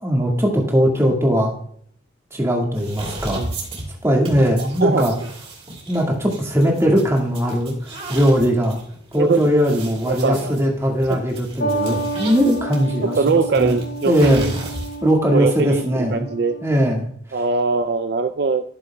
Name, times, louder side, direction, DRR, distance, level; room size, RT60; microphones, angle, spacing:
voice 1, 0.0-1.5 2.3-3.4 4.0-5.1 5.9-8.8 9.1-13.8 14.1-14.4 15.0-16.3 16.6-17.1, equal, 15° right, 0 dB, 1.8 m, -19 dB
sound 1, 2.7-15.1, right 2 dB, 30° right, 2.7 m, -35 dB
voice 2, 4.6-5.3 9.2-9.4 10.1-10.6 11.1-11.2 13.0-14.5 15.3-15.8 16.1-16.5 17.3-18.6, right 4 dB, 55° right, 8 dB, 0.4 m, -21 dB
sound 2, 11.6-16.8, right 2 dB, 50° left, 1.1 m, -30 dB
12.0 x 6.9 x 2.2 m, 0.63 s
head